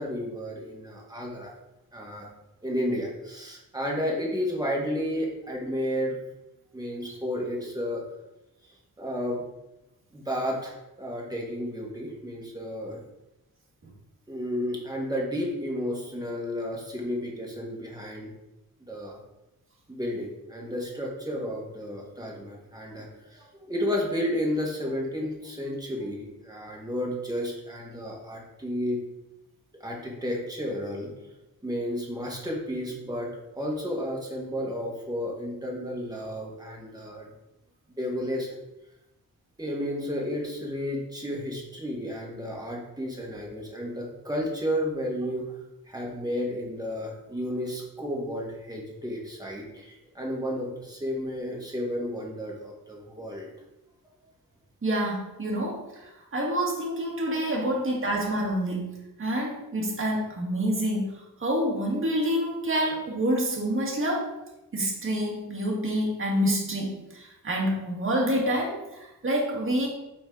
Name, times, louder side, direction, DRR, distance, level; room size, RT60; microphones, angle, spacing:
voice 1, 0.0-1.5 1.9-2.3 2.6-6.2 6.7-8.0 9.0-9.4 10.1-13.0 14.3-18.3 18.9-19.2 19.9-29.0 29.8-31.1 31.6-37.3 38.0-38.6 39.6-45.5 45.9-53.5 57.6-57.7, equal, 10° right, -2 dB, 1.7 m, -32 dB
voice 2, 54.8-55.9 56.3-61.1 61.4-64.3 64.7-69.9, equal, 35° right, -2 dB, 2.0 m, -27 dB
8.7 x 4.2 x 4.0 m, 0.94 s
wide cardioid pair, 140°, 34 cm